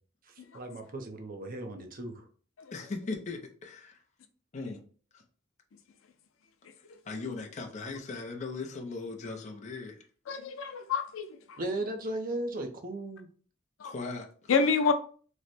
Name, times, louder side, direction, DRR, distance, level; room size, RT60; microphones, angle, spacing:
voice 1, 0.5-2.2 11.6-13.3, right 1 dB, 45° right, 0.6 m, -36 dB
voice 2, 2.7-4.0 4.5-4.8 5.1-5.2 7.1-10.0 13.8-14.5, left 3 dB, 35° left, 0.5 m, -38 dB
voice 3, 10.3-11.6 13.8-13.9 14.5-14.9, left 5 dB, 90° left, 0.5 m, -28 dB
3.1 x 2.1 x 4.0 m
head